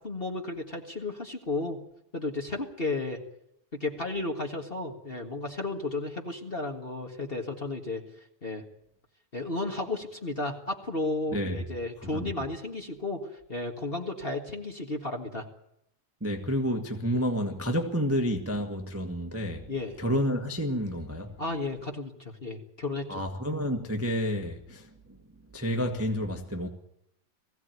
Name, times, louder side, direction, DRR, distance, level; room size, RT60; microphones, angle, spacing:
voice 1, 0.0-1.8 2.1-3.2 3.7-8.0 8.4-8.6 9.3-13.2 13.5-15.4 19.7-20.0 21.4-23.2, left 2 dB, 25° left, 1.2 m, -33 dB
voice 2, 11.3-11.6 12.0-12.3 16.2-19.7 20.0-21.3 23.1-25.2 25.5-26.7, equal, 15° right, 0.4 m, -30 dB
20.0 x 16.0 x 9.4 m
omnidirectional pair, 3.5 m